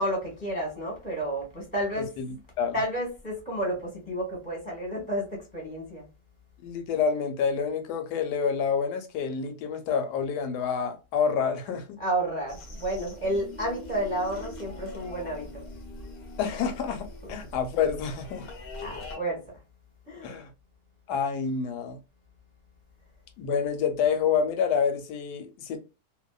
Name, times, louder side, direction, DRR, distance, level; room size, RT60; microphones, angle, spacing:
voice 1, 0.0-2.1 2.7-6.1 12.0-15.6 17.2-17.4 18.8-19.4 20.1-20.4, right 1 dB, 5° left, 0.7 m, -31 dB
voice 2, 2.0-2.8 6.6-12.0 16.4-18.5 20.2-20.5 21.1-22.0 23.4-25.8, left 6 dB, 85° left, 1.2 m, -28 dB
sound 1, 12.5-19.2, left 2 dB, 60° left, 0.6 m, -42 dB
2.7 x 2.1 x 2.2 m
omnidirectional pair, 1.7 m